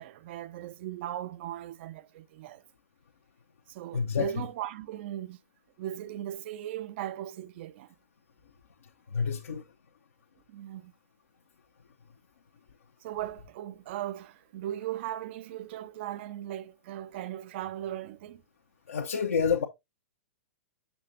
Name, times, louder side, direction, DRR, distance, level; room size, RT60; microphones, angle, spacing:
voice 1, 0.0-2.6 3.7-5.4 5.8-7.9 10.5-10.9 13.0-18.4, right 12 dB, 50° right, 0.6 m, -38 dB
voice 2, 3.9-4.3 9.1-9.6 18.9-19.6, left 6 dB, 70° left, 1.0 m, -28 dB
7.0 x 6.5 x 2.7 m
figure-of-eight pair, 105°, 8 cm